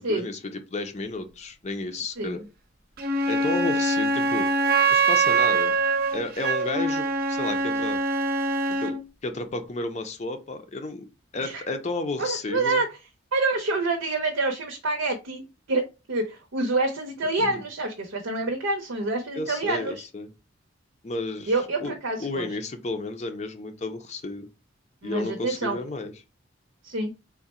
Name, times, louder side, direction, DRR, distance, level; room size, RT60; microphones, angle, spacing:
voice 1, 0.0-2.4 3.3-4.5 4.9-5.8 6.1-8.0 8.7-11.0 11.3-12.8 17.4-17.6 19.3-20.3 21.0-21.5 21.8-21.9 22.2-24.5 25.0-26.1, left 2 dB, 35° left, 7 dB, 0.5 m, -32 dB
Wind instrument woodwind instrument, 3.0-9.0, right 3 dB, 50° right, 0.7 m, -23 dB
voice 2, 12.2-12.9 13.3-19.9 21.5-22.5 25.0-25.8 26.8-27.1, right 2 dB, 85° right, 3 dB, 0.7 m, -27 dB
3.6 x 2.1 x 4.1 m, 0.27 s
head